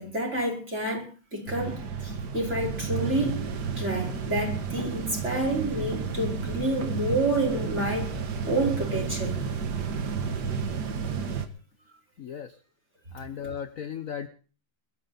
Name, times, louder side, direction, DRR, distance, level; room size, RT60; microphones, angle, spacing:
voice 1, 0.0-3.4 3.8-8.2 8.5-9.4, right 1 dB, 30° right, -1 dB, 5.6 m, -29 dB
sound 1, 1.5-11.5, right 5 dB, 55° right, 1.9 m, -31 dB
voice 2, 12.2-12.5 13.1-14.3, left 8 dB, 55° left, 10 dB, 1.0 m, -36 dB
22.5 x 13.0 x 4.0 m, 0.38 s
omnidirectional pair, 2.4 m